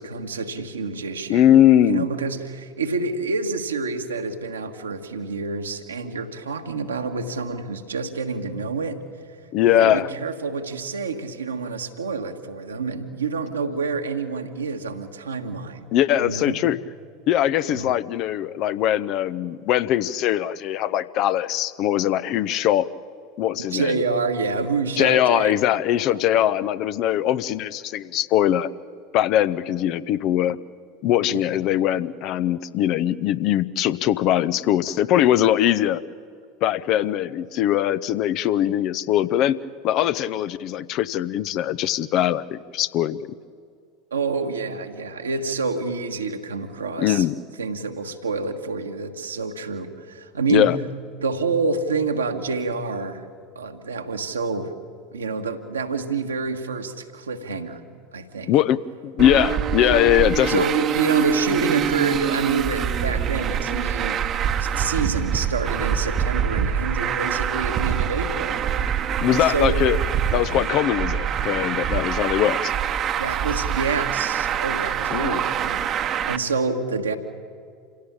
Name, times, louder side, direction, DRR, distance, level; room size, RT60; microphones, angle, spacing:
voice 1, 0.0-1.5 1.8-9.0 9.6-15.9 16.2-16.6 17.7-17.9 23.7-25.6 25.9-26.1 31.3-31.4 44.1-47.2 47.6-50.7 51.2-53.3 53.5-54.7 55.1-57.8 58.1-58.5 59.8-60.0 60.5-64.2 64.6-68.6 69.2-69.8 73.2-77.2, right 4 dB, 75° right, 4 dB, 1.6 m, -27 dB
voice 2, 1.3-2.1 9.5-10.1 15.9-16.8 17.3-22.9 23.4-24.0 25.0-28.7 29.1-30.6 31.0-36.0 36.6-39.6 39.8-43.2 47.0-47.3 50.5-50.8 58.5-60.7 69.2-70.0 70.3-72.7 75.1-75.4, left 12 dB, 45° left, 14 dB, 0.7 m, -21 dB
Traffic noise roadway noise, 59.2-76.4, right 8 dB, 35° right, 1.1 m, -25 dB
27.5 x 17.0 x 8.7 m, 2.3 s
figure-of-eight pair, 75°, 0 cm